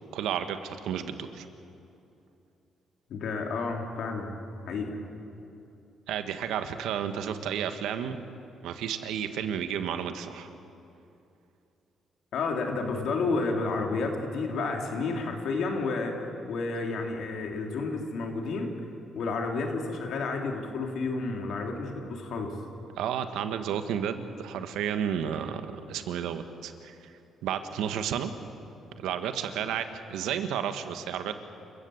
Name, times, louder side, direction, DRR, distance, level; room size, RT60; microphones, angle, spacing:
voice 1, 0.1-1.5 6.1-8.2 8.6-10.5 23.0-27.1 27.4-28.3 29.0-31.3, right 8 dB, 90° right, 8 dB, 1.4 m, -32 dB
voice 2, 3.1-4.3 4.7-5.0 12.3-16.1 16.4-18.7 19.1-22.5, left 3 dB, 70° left, 2 dB, 3.3 m, -31 dB
28.5 x 15.0 x 7.9 m, 2.8 s
cardioid pair, 90°, 0 cm